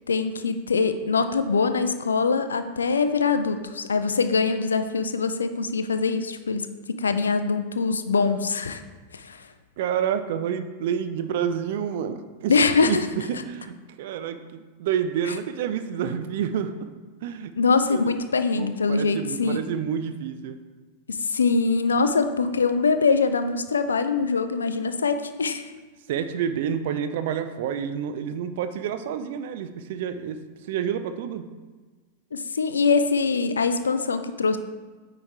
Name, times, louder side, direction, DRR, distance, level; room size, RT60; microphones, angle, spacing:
voice 1, 0.1-8.8 9.1-9.5 12.5-13.1 17.6-19.6 21.1-25.6 32.3-34.6, left 4 dB, 70° left, 9 dB, 0.4 m, -23 dB
voice 2, 9.8-12.5 12.8-16.9 17.2-17.5 17.9-18.0 18.6-20.6 26.1-30.4 30.7-31.5, right 8 dB, 55° right, 10 dB, 0.4 m, -29 dB
9.3 x 3.2 x 3.6 m, 1.3 s
figure-of-eight pair, 90°, 0 cm